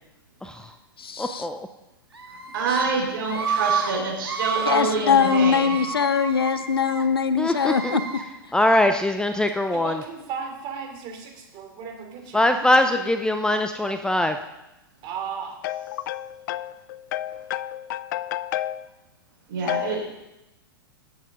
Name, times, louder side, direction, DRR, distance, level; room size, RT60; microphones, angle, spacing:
voice 1, 1.2-1.5 7.4-8.0 8.5-10.0 12.3-14.4, left 1 dB, 5° left, 7 dB, 0.6 m, -22 dB
Screaming, 2.1-2.7 3.2-3.9 4.2-4.8 5.2-7.0 7.5-8.2, right 6 dB, 90° right, 2.1 m, -29 dB
voice 2, 2.5-5.8 17.3-17.4 19.5-20.0, right 4 dB, 65° right, -1 dB, 4.7 m, -26 dB
voice 3, 4.7-8.0, left 6 dB, 80° left, 13 dB, 0.8 m, -21 dB
voice 4, 9.7-12.4 15.0-15.6, right 6 dB, 40° right, 2 dB, 3.1 m, -35 dB
voice 5, 15.6-18.9 19.7-20.0, left 13 dB, 50° left, 17 dB, 0.5 m, -31 dB
18.0 x 8.2 x 3.8 m, 0.95 s
figure-of-eight pair, 105°, 12 cm